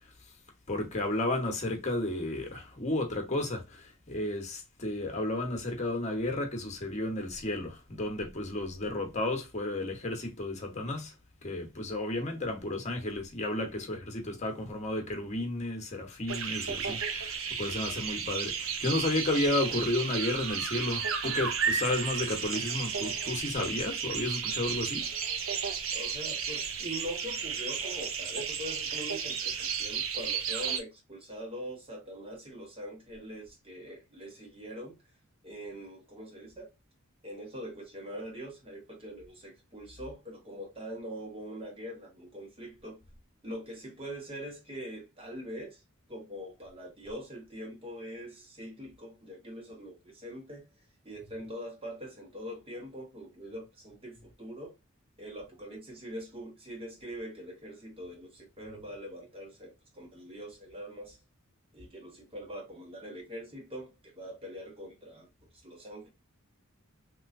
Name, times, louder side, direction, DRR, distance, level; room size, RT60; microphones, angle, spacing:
voice 1, 0.7-11.1 11.4-25.1, left 2 dB, 35° left, 1.0 m, -32 dB
voice 2, 13.3-13.7 25.9-35.0 35.4-36.7 37.2-43.0 43.4-45.8 46.1-50.7 51.0-54.7 55.2-61.2 61.7-65.3 65.6-66.1, equal, 30° right, 1.3 m, -43 dB
sound 1, 16.3-30.8, right 6 dB, 75° right, 0.7 m, -33 dB
3.1 x 3.1 x 2.6 m
head